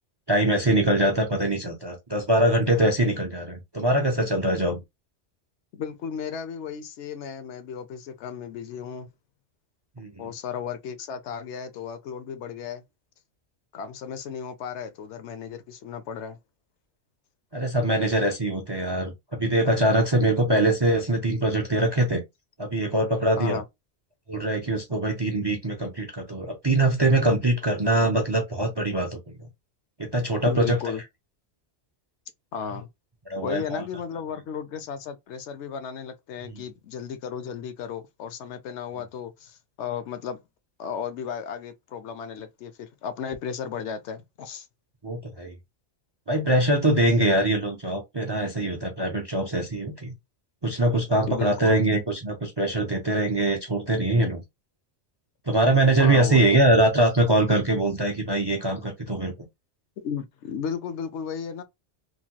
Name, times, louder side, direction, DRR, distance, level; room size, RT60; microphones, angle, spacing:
voice 1, 0.3-4.8 10.0-10.3 17.5-19.1 19.4-22.2 22.6-23.6 24.3-29.2 30.0-30.8 33.3-33.8 36.5-36.6 45.0-45.5 46.3-50.1 50.6-54.4 55.5-59.3, right 1 dB, 40° right, 0.3 m, -23 dB
voice 2, 5.7-9.1 10.2-12.8 13.7-16.4 23.4-23.6 30.4-31.0 32.5-32.9 33.4-40.4 40.8-44.7 51.3-51.8 56.0-56.7 60.0-61.6, left 7 dB, 75° left, 0.9 m, -34 dB
3.1 x 2.2 x 2.7 m
omnidirectional pair, 1.2 m